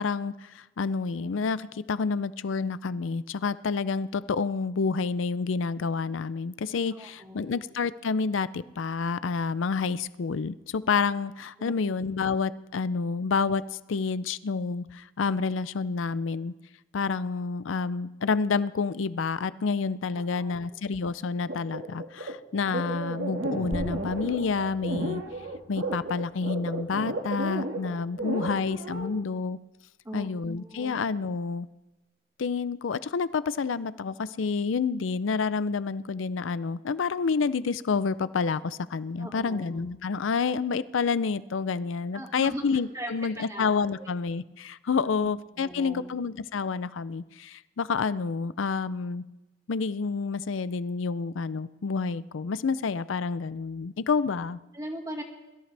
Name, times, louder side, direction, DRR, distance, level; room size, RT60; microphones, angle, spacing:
voice 1, 0.0-13.6 13.9-16.5 16.9-25.2 25.7-29.6 30.1-31.7 32.4-49.2 49.7-54.6, left 5 dB, 85° left, 16 dB, 0.5 m, -29 dB
voice 2, 7.0-7.6 11.6-11.9 20.1-20.8 28.2-28.3 28.5-28.7 30.0-30.3 30.6-31.0 39.2-39.9 42.1-42.6 42.9-44.1 45.2-45.3 45.6-46.0 54.7-55.2, equal, 15° right, 2 dB, 2.0 m, -40 dB
sound 1, 21.5-29.1, right 1 dB, 85° right, 1.8 m, -33 dB
sound 2, 23.7-28.8, equal, 70° right, 3.4 m, -45 dB
22.0 x 13.5 x 3.4 m, 1.0 s
head